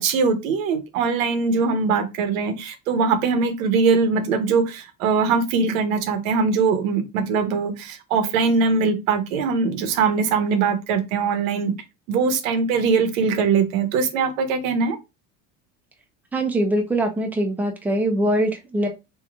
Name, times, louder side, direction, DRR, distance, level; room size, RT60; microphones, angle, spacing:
voice 1, 0.0-11.7 12.1-15.0, right 5 dB, 80° right, 0.9 m, -21 dB
voice 2, 16.3-18.9, right 1 dB, 5° right, 0.6 m, -22 dB
3.2 x 2.8 x 2.4 m
supercardioid pair, 90°, 40 cm